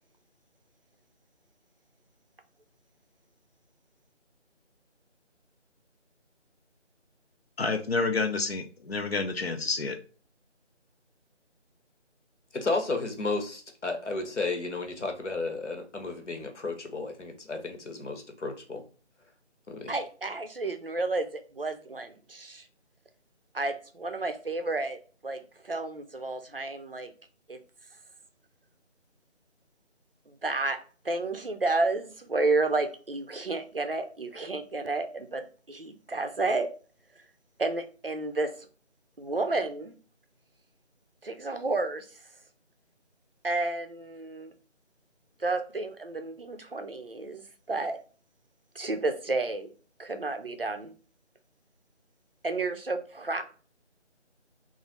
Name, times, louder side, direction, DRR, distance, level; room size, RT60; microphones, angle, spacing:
voice 1, 7.6-10.0, left 3 dB, 55° left, 0.6 m, -29 dB
voice 2, 12.5-18.8 19.7-19.9, left 3 dB, 75° left, 1.0 m, -33 dB
voice 3, 19.9-22.6 23.5-25.4 25.6-27.1 27.5-27.6 30.4-30.8 31.0-36.7 37.6-38.5 39.2-40.0 41.2-42.1 43.4-44.5 45.4-48.0 48.8-49.7 50.0-50.9 52.4-53.4, right 3 dB, 50° right, 0.5 m, -31 dB
3.0 x 2.5 x 4.1 m
figure-of-eight pair, 170°, 36 cm